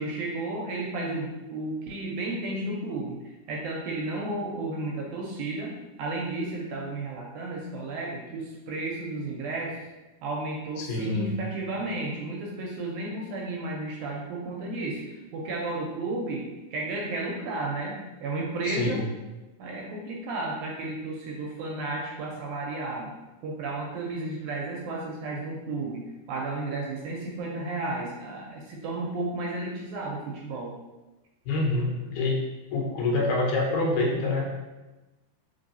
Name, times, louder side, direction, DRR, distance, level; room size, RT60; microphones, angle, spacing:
voice 1, 0.0-3.2 3.5-5.7 6.0-9.8 10.2-16.4 16.7-19.0 19.6-23.1 23.4-30.7, right 2 dB, 80° right, -2 dB, 1.8 m, -33 dB
voice 2, 10.8-11.4 18.7-19.0 31.5-32.4 32.7-34.6, left 2 dB, 80° left, -1 dB, 2.1 m, -26 dB
4.6 x 3.2 x 2.6 m, 1.1 s
omnidirectional pair, 3.8 m